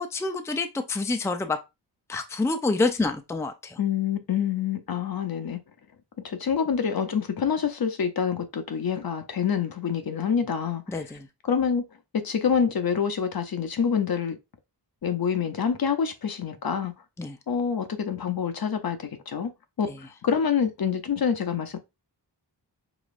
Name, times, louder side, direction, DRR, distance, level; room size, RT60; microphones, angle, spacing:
voice 1, 0.0-1.6 2.1-3.8 10.9-11.2 17.2-17.3, left 3 dB, 5° left, 0.4 m, -27 dB
voice 2, 3.8-5.6 6.2-11.2 11.4-11.8 12.1-14.4 15.0-16.9 17.5-19.5 19.8-19.9 20.2-21.8, left 7 dB, 55° left, 0.7 m, -26 dB
5.0 x 3.1 x 2.4 m
wide cardioid pair, 90°, 43 cm